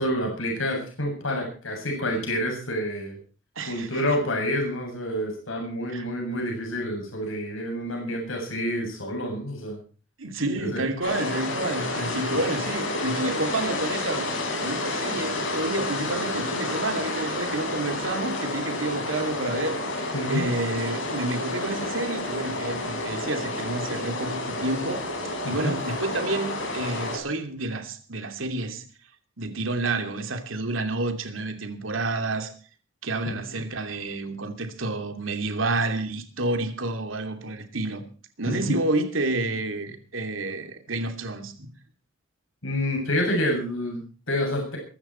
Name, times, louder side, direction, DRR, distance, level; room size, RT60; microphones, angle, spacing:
voice 1, 0.0-3.2 3.7-9.8 10.6-10.8 12.3-12.4 20.1-20.5 25.4-25.7 38.5-38.7 42.6-44.8, equal, 90° left, 7.5 m, -28 dB
voice 2, 3.6-4.0 5.9-6.1 10.2-14.3 14.6-28.8 29.4-32.5 33.0-38.0 38.4-41.7, right 2 dB, 85° right, 2.8 m, -29 dB
sound 1, 11.0-27.2, left 2 dB, 75° left, 6.9 m, -30 dB
22.5 x 13.5 x 4.5 m
head